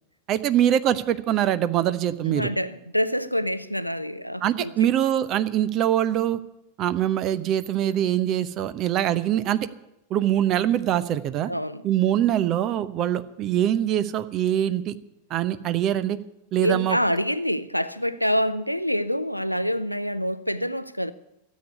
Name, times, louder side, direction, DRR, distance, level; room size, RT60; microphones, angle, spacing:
voice 1, 0.3-2.5 4.4-6.4 6.8-9.6 10.1-11.5 11.8-14.9 15.3-16.2 16.5-17.0, right 11 dB, 35° right, 0.7 m, -23 dB
voice 2, 2.3-4.9 11.5-11.8 16.5-21.1, equal, 90° left, 0.6 m, -26 dB
13.5 x 8.4 x 9.4 m
figure-of-eight pair, 90°, 0 cm